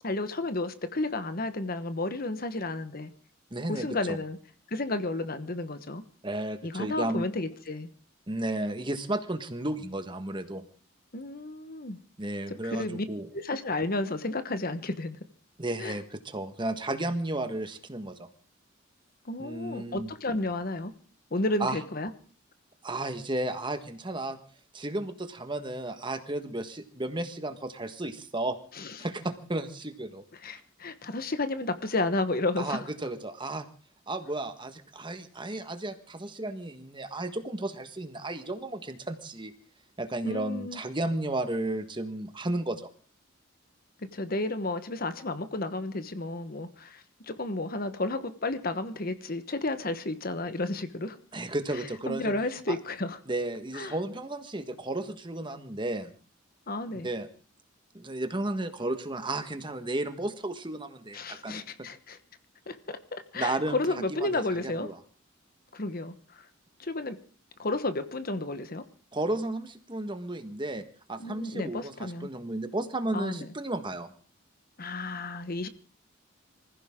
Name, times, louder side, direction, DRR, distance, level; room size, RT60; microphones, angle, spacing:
voice 1, 0.0-3.1 3.7-4.4 4.7-6.0 6.6-7.9 11.1-12.0 12.5-13.1 13.3-15.2 15.8-16.0 19.3-20.9 21.3-22.1 28.8-29.0 30.4-32.8 40.2-40.8 44.1-51.2 52.1-53.2 53.7-54.0 56.7-57.1 61.1-62.2 62.7-64.9 65.7-66.5 66.8-67.2 67.6-68.8 71.2-72.3 73.1-73.4 74.8-75.7, left 2 dB, 45° left, 11 dB, 1.2 m, -32 dB
voice 2, 3.5-4.2 6.2-7.2 8.3-10.6 12.2-13.3 15.6-18.3 19.4-20.1 21.6-21.8 22.8-24.4 24.7-28.6 29.0-30.2 32.6-33.7 34.1-39.5 40.0-42.9 51.3-52.3 52.7-52.8 53.3-56.1 57.0-57.3 57.9-61.6 63.3-63.8 64.2-65.0 69.1-70.8 71.1-74.1, right 2 dB, 25° right, 8 dB, 1.4 m, -33 dB
25.0 x 15.5 x 3.7 m, 0.39 s
head